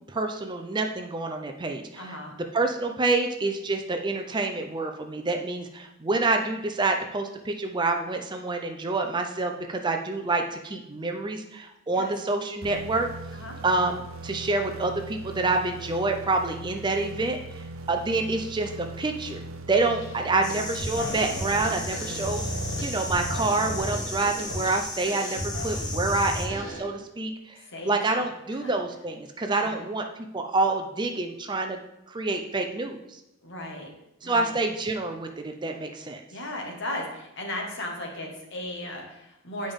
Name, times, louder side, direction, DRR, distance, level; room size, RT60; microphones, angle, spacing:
voice 1, 0.1-1.8 2.5-13.1 13.6-22.4 22.8-27.6 27.9-30.0 30.3-31.8 32.1-33.2 34.2-36.2, right 3 dB, 20° right, 5 dB, 0.5 m, -27 dB
voice 2, 2.0-2.3 11.9-12.1 13.3-13.6 26.1-26.4 27.5-28.7 29.6-29.8 33.4-33.9 34.2-34.6 36.3-39.7, left 1 dB, 60° left, 1 dB, 1.6 m, -36 dB
sound 1, 12.6-24.3, right 2 dB, 85° right, 0.7 m, -40 dB
sound 2, 19.9-20.2 20.5-26.8, equal, 80° left, 2.6 m, -34 dB
sound 3, 20.4-26.5, left 2 dB, 20° left, 1.0 m, -36 dB
8.9 x 5.2 x 3.6 m, 0.87 s
head